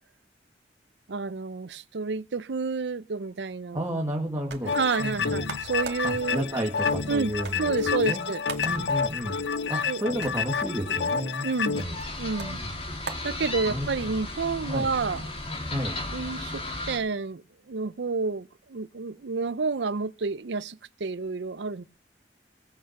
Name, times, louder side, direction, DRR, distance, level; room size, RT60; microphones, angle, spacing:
voice 1, 1.1-3.8 4.7-6.4 7.1-7.3 7.6-8.4 9.9-10.0 11.4-11.8 12.2-12.6 13.2-15.3 16.1-21.8, right 4 dB, 90° right, 0.6 m, -30 dB
voice 2, 3.7-4.7 5.0-5.4 6.0-7.8 8.0-8.2 8.6-9.4 9.7-11.5 11.8-12.0 12.5-12.7 13.7-13.9 14.7-14.9 15.7-15.9, equal, 20° right, 1.9 m, -31 dB
sound 1, 4.3-14.0, right 4 dB, 70° right, 2.2 m, -44 dB
sound 2, 4.7-11.8, left 5 dB, 75° left, 0.6 m, -29 dB
sound 3, 11.7-17.0, left 2 dB, 35° left, 3.5 m, -35 dB
18.0 x 8.8 x 5.9 m
head